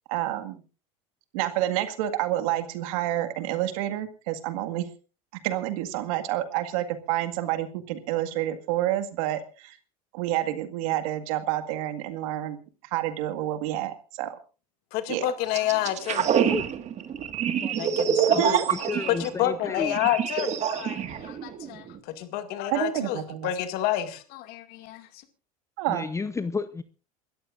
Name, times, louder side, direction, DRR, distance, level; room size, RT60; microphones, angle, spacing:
voice 1, 0.1-0.6 1.3-4.9 5.4-9.8 10.1-12.6 12.9-14.4 15.1-15.3 18.4-18.7 22.7-23.5 25.8-26.1, right 13 dB, 70° right, 2.0 m, -28 dB
voice 2, 14.9-16.3 17.7-18.6 19.0-25.1, left 12 dB, 60° left, 2.3 m, -29 dB
sound 1, 15.5-22.0, right 8 dB, 40° right, 1.8 m, -26 dB
voice 3, 18.3-20.0 25.9-26.8, left 4 dB, 15° left, 0.8 m, -32 dB
28.0 x 13.5 x 2.5 m
hypercardioid pair, 95°, 18 cm